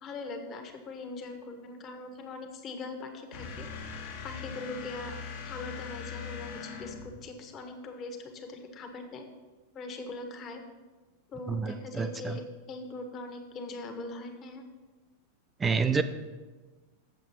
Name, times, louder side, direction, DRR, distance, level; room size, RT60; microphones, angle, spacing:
voice 1, 0.0-3.7 4.2-5.2 5.4-9.2 9.7-10.6 11.3-14.6, left 3 dB, 30° left, 5 dB, 1.3 m, -41 dB
sound 1, 3.3-7.2, left 6 dB, 55° left, 1.5 m, -41 dB
voice 2, 11.5-12.4 15.6-16.0, right 5 dB, 15° right, 10 dB, 0.5 m, -28 dB
7.7 x 7.2 x 5.7 m, 1.3 s
figure-of-eight pair, 90°, 0 cm